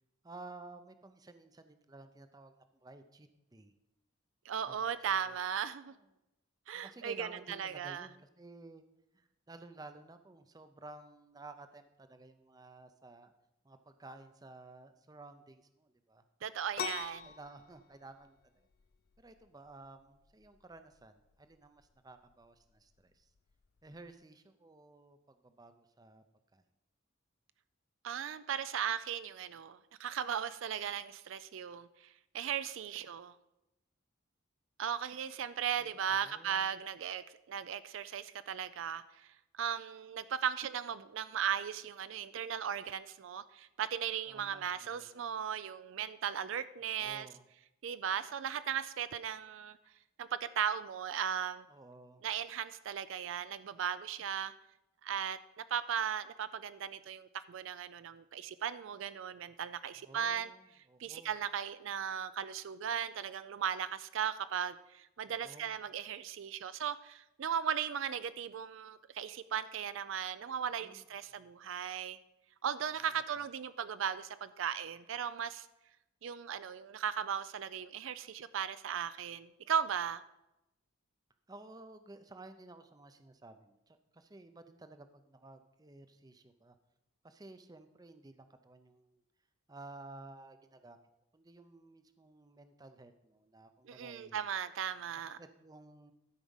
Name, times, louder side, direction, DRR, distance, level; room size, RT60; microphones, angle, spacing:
voice 1, 0.2-3.7 4.7-5.4 6.7-8.8 9.1-13.3 13.6-16.2 17.2-18.7 19.2-23.3 23.8-26.2 26.5-26.6 35.7-36.7 44.3-45.2 46.9-47.5 51.7-52.3 59.9-61.3 65.3-65.8 70.7-71.1 71.3-71.5 81.5-86.8 87.2-89.2 89.7-91.1 91.3-94.5 95.4-96.1, right 2 dB, 20° right, 9 dB, 0.5 m, -54 dB
voice 2, 4.5-5.9 6.7-8.1 16.4-17.3 28.0-33.3 34.8-39.3 39.5-47.3 47.8-49.8 50.2-51.6 52.2-54.5 55.0-60.5 61.0-72.2 72.6-75.7 76.2-80.2 93.9-95.4, right 8 dB, 65° right, 14 dB, 0.4 m, -37 dB
sound 1, 16.8-24.1, left 7 dB, 45° left, 0.4 m, -47 dB
12.5 x 4.9 x 5.5 m, 0.90 s
head